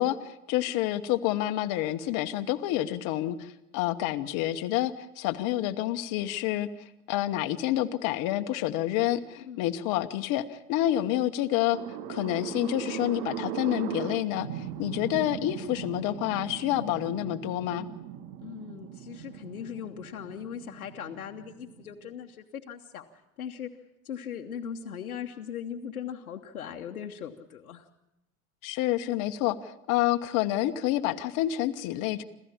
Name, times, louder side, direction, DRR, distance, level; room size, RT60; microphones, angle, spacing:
voice 1, 0.0-6.7 7.1-11.8 12.1-17.9 28.6-32.2, left 14 dB, 50° left, 7 dB, 1.1 m, -28 dB
sound 1, 11.7-22.1, right 10 dB, 50° right, 1.4 m, -39 dB
voice 2, 18.4-23.7 24.0-27.9, left 8 dB, 75° left, 3 dB, 1.1 m, -39 dB
27.0 x 14.5 x 7.3 m, 0.93 s
figure-of-eight pair, 75°, 43 cm